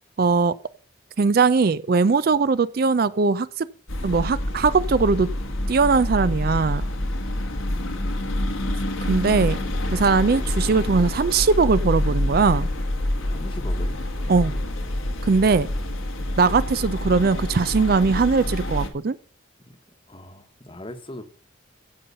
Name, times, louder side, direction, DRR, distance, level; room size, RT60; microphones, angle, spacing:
voice 1, 0.2-0.5 1.2-3.7 4.0-5.3 5.7-6.8 9.1-9.6 9.9-12.7 14.3-14.5 15.2-15.7 16.4-19.2, right 4 dB, 45° right, 0.4 m, -20 dB
sound 1, 3.9-18.9, left 1 dB, 90° left, 1.8 m, -27 dB
voice 2, 7.6-8.2 13.3-14.0 15.4-15.6 19.7-19.8 20.1-21.3, left 1 dB, 25° left, 1.1 m, -40 dB
15.5 x 5.5 x 5.4 m
head